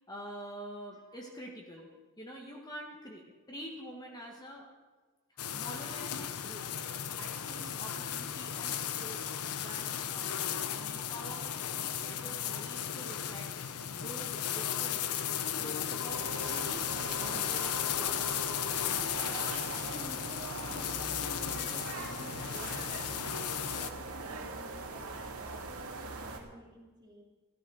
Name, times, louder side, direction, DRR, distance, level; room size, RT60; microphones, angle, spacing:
voice 1, 0.1-1.9 2.2-3.2 3.5-4.7 5.3-6.6 7.2-9.2 9.5-13.5 13.9-16.8 17.1-18.4, equal, 15° left, -1 dB, 1.7 m, -47 dB
sound 1, 5.4-23.9, left 9 dB, 90° left, 0.9 m, -35 dB
sound 2, 16.1-26.4, right 3 dB, 75° right, 2.3 m, -42 dB
voice 2, 19.8-23.1 23.7-27.2, equal, 20° right, 0 dB, 2.8 m, -52 dB
13.5 x 13.5 x 6.5 m, 1.3 s
head